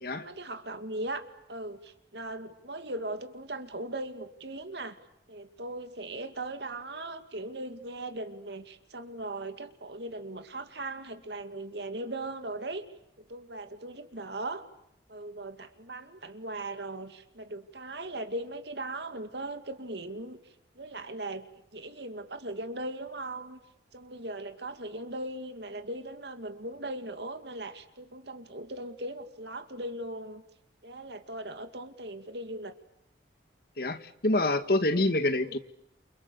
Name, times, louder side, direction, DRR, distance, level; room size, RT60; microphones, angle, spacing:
voice 1, 0.0-5.0 5.3-12.9 13.3-14.7 15.1-21.5 21.7-23.6 23.9-30.4 30.8-32.7 35.4-35.6, right 2 dB, 65° right, 8 dB, 2.4 m, -39 dB
voice 2, 33.8-35.6, left 2 dB, 55° left, 9 dB, 1.8 m, -26 dB
29.0 x 28.0 x 7.0 m, 0.79 s
head